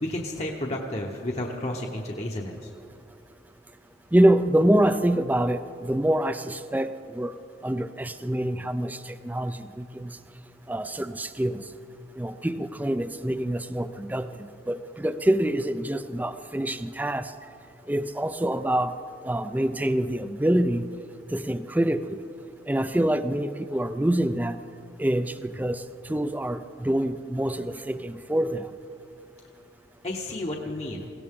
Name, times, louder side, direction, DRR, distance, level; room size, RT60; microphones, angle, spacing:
voice 1, 0.0-2.7 30.0-31.1, left 1 dB, 35° left, 0 dB, 1.0 m, -32 dB
voice 2, 4.1-7.3 7.6-9.0 9.3-10.1 10.7-11.6 12.2-14.3 14.7-17.3 17.9-18.9 19.2-20.9 21.3-22.2 22.7-24.6 25.0-25.8 26.1-28.7, right 1 dB, 10° right, 11 dB, 0.4 m, -25 dB
21.0 x 17.0 x 3.7 m, 2.5 s
head